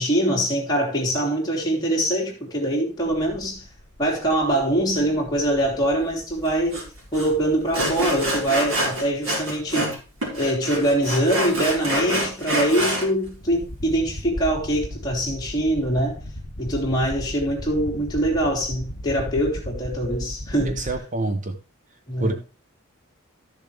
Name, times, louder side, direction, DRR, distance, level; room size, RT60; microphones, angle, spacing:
voice 1, 0.0-3.7 4.0-6.8 7.1-9.9 10.3-16.2 16.6-20.9 22.1-22.3, right 1 dB, 20° left, 3.0 m, -23 dB
sound 1, 3.0-21.0, left 1 dB, 55° left, 2.0 m, -38 dB
Sawing, 6.7-6.8 7.1-7.3 7.7-10.0 10.2-13.1, right 1 dB, 75° right, 4.4 m, -26 dB
voice 2, 20.7-21.6 22.2-22.4, right 2 dB, 35° right, 0.6 m, -26 dB
13.5 x 6.9 x 3.3 m
head